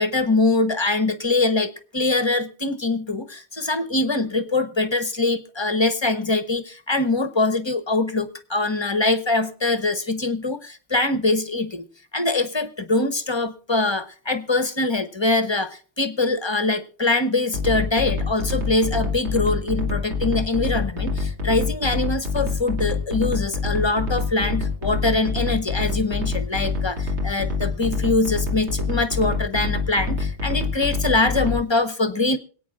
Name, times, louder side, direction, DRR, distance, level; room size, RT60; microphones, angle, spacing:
voice 1, 0.0-11.9 12.1-32.4, left 2 dB, 25° left, 10 dB, 0.8 m, -23 dB
sound 1, 17.5-31.6, left 3 dB, 65° right, 2.4 m, -26 dB
26.0 x 9.0 x 2.4 m, 0.43 s
omnidirectional pair, 1.2 m